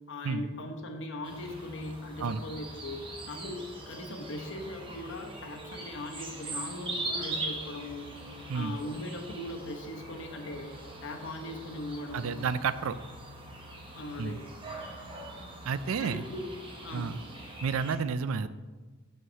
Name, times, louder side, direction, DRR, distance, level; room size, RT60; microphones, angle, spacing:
voice 1, 0.1-10.7 11.0-12.5 13.9-14.5 16.0-16.5 16.7-17.2, left 1 dB, 60° left, 4 dB, 1.0 m, -40 dB
sound 1, 1.2-18.0, right 2 dB, 25° right, 1.0 m, -42 dB
voice 2, 12.1-13.0 14.2-14.4 15.7-16.2 16.9-17.2 17.6-18.5, right 5 dB, 75° right, 14 dB, 0.4 m, -30 dB
5.6 x 5.5 x 6.3 m, 1.3 s
head